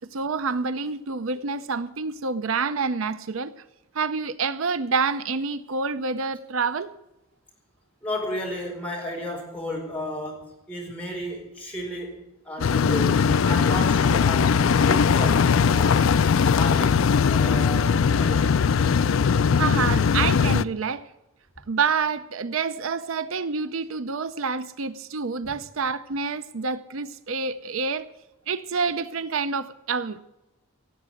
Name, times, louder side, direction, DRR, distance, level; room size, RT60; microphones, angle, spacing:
voice 1, 0.1-3.5 3.9-6.9 19.6-21.0 21.7-28.1 28.5-30.2, right 5 dB, 75° right, 0.6 m, -27 dB
voice 2, 8.0-14.6 14.9-16.1 16.5-18.7 25.4-25.5, left 1 dB, 5° left, 4.6 m, -33 dB
sound 1, 12.6-20.6, left 6 dB, 70° left, 0.4 m, -20 dB
17.0 x 8.0 x 7.8 m
head